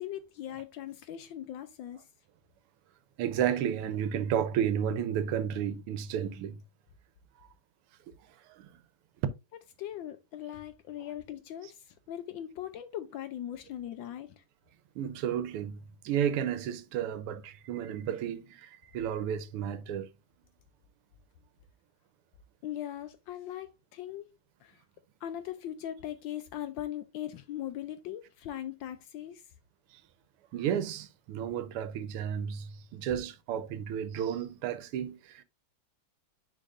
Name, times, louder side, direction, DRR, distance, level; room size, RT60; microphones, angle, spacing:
voice 1, 0.0-2.1 9.8-14.4 22.6-24.3 24.6-24.8 25.2-29.4, left 11 dB, 75° left, 1.1 m, -40 dB
voice 2, 3.2-6.6 8.6-8.7 15.0-15.8 16.0-20.1 30.5-35.4, right 9 dB, 90° right, 1.6 m, -32 dB
9.9 x 4.1 x 2.5 m
omnidirectional pair, 2.4 m